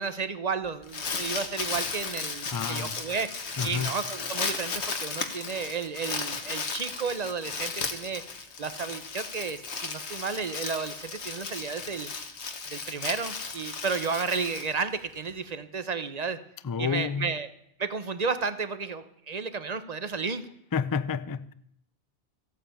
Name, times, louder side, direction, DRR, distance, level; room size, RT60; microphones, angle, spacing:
voice 1, 0.0-8.2 8.6-12.1 12.7-16.4 16.8-17.5 17.8-20.4, right 5 dB, 40° right, 1.1 m, -32 dB
Crumpling crinkling, 0.6-15.3, left 4 dB, 85° left, 1.7 m, -35 dB
voice 2, 2.5-3.0 3.6-3.9 16.6-17.3 20.7-21.5, left 6 dB, 30° left, 0.4 m, -30 dB
15.0 x 8.7 x 8.6 m
omnidirectional pair, 1.1 m